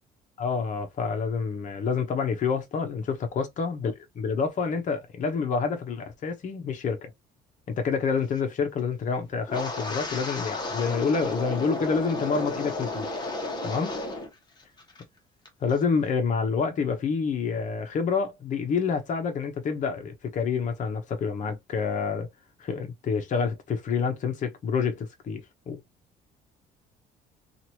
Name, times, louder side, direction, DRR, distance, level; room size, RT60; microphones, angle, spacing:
voice 1, 0.4-7.1 7.7-13.1 13.6-14.0 15.6-22.3 22.6-25.8, left 5 dB, 50° left, 0.9 m, -28 dB
Wind, 9.5-14.3 14.6-15.0 15.5-15.7, left 2 dB, 25° left, 1.2 m, -33 dB
2.9 x 2.6 x 2.9 m
cardioid pair, 110°, 17 cm